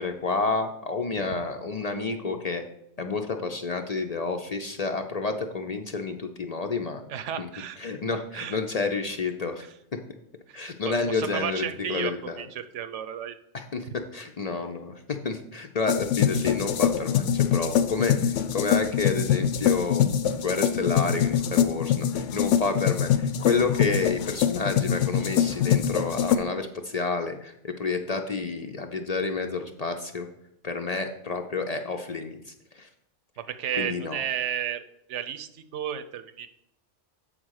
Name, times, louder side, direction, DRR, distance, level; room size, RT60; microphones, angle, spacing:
voice 1, 0.0-2.6 3.0-7.0 7.4-7.5 7.8-9.7 10.5-12.5 13.5-30.3 30.6-32.9 33.8-34.2, left 4 dB, 50° left, 5 dB, 0.5 m, -30 dB
voice 2, 7.1-7.8 8.3-8.6 10.5-12.1 12.4-13.4 33.4-34.8 35.1-36.5, right 9 dB, 80° right, 10 dB, 0.9 m, -33 dB
sound 1, 15.9-26.4, left 9 dB, 90° left, 0.9 m, -24 dB
7.9 x 3.8 x 6.3 m, 0.76 s
omnidirectional pair, 1.2 m